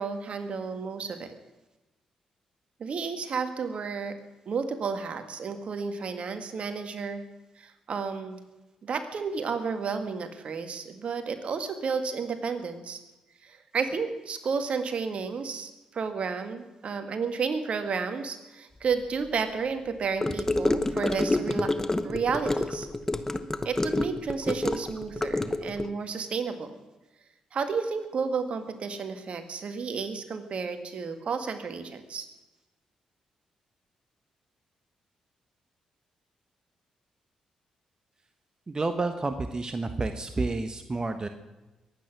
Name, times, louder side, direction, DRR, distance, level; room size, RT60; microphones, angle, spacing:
voice 1, 0.0-1.3 2.8-4.2 4.5-7.2 7.6-8.4 8.8-13.0 13.4-21.7 22.0-22.9 23.6-26.8 27.5-32.3, right 5 dB, 60° right, 8 dB, 1.8 m, -32 dB
Gurgling / Car passing by / Sink (filling or washing), 20.2-25.9, left 2 dB, 20° left, 1.1 m, -28 dB
voice 2, 38.7-41.3, right 3 dB, 30° right, 8 dB, 1.3 m, -30 dB
22.0 x 9.2 x 6.1 m, 1.1 s
supercardioid pair, 50°, 2 cm